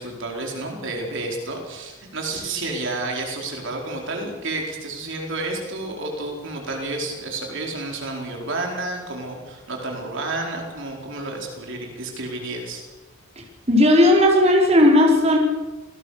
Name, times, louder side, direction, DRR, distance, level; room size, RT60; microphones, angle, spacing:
voice 1, 0.0-12.8, right 2 dB, 55° right, 1 dB, 4.7 m, -30 dB
voice 2, 13.7-15.4, left 1 dB, 30° right, -1 dB, 4.9 m, -15 dB
28.0 x 19.0 x 6.6 m, 1.2 s
head